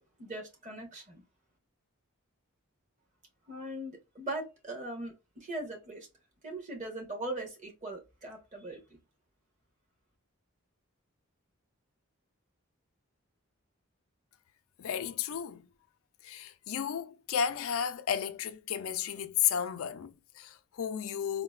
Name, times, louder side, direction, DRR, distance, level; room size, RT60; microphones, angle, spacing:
voice 1, 0.2-1.2 3.5-6.1 6.4-8.8, right 1 dB, 35° right, 1.1 m, -40 dB
voice 2, 14.8-15.7 16.2-21.4, left 8 dB, 75° left, 0.4 m, -33 dB
3.8 x 2.1 x 2.3 m
head